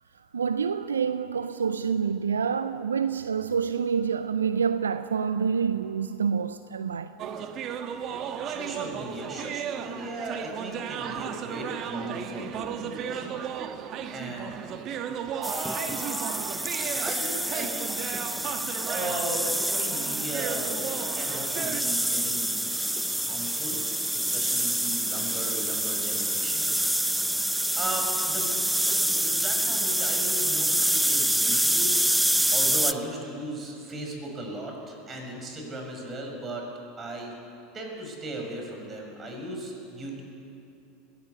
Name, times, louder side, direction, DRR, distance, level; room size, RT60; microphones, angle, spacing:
voice 1, 0.3-7.1, right 6 dB, 85° right, 0.5 m, -27 dB
sound 1, 7.2-21.8, right 8 dB, 45° right, 1.3 m, -35 dB
voice 2, 8.4-13.3 14.1-14.6 15.3-15.9 17.0-17.9 18.9-20.7 21.1-22.6 23.0-23.8 24.1-26.7 27.0-27.1 27.8-32.1 32.5-36.7 37.0-37.3 37.7-40.2, right 1 dB, 30° right, 6.4 m, -37 dB
sound 2, 15.4-32.9, right 1 dB, 5° right, 0.7 m, -27 dB
21.0 x 16.5 x 8.3 m
hypercardioid pair, 80°, 0 cm